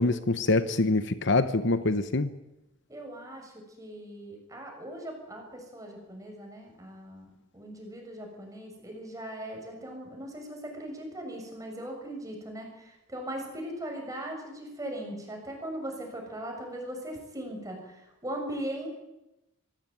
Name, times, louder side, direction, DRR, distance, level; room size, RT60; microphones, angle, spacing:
voice 1, 0.0-2.3, left 2 dB, 60° left, 12 dB, 1.1 m, -25 dB
voice 2, 2.9-3.5 3.8-18.9, right 1 dB, 15° right, 2 dB, 7.0 m, -39 dB
24.5 x 17.0 x 9.3 m, 0.93 s
head